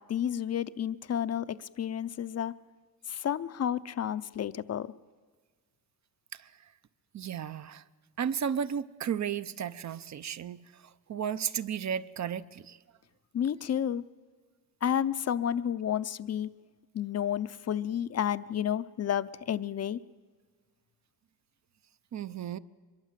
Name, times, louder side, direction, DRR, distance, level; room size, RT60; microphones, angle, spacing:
voice 1, 0.1-2.5 3.1-4.9 13.3-14.0 14.8-16.5 16.9-20.0, left 9 dB, 40° left, 15 dB, 0.6 m, -31 dB
voice 2, 7.1-7.8 8.2-10.8 11.1-12.8 22.1-22.6, right 8 dB, 45° right, 15 dB, 0.8 m, -34 dB
23.5 x 22.0 x 7.5 m, 1.5 s
cardioid pair, 100°, 39 cm